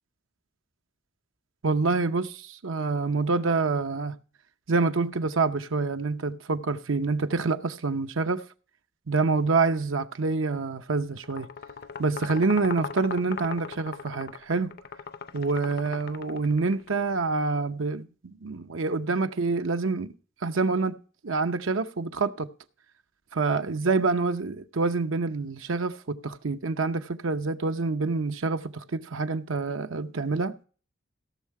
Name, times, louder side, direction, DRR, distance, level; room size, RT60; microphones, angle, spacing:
voice 1, 1.6-4.2 4.7-8.4 9.1-11.5 12.0-14.7 15.3-20.1 20.4-21.0 21.2-22.5 23.3-30.5, right 4 dB, 80° right, 0.8 m, -27 dB
sound 1, 11.2-16.9, left 6 dB, 55° left, 0.6 m, -39 dB
16.5 x 6.5 x 4.7 m
head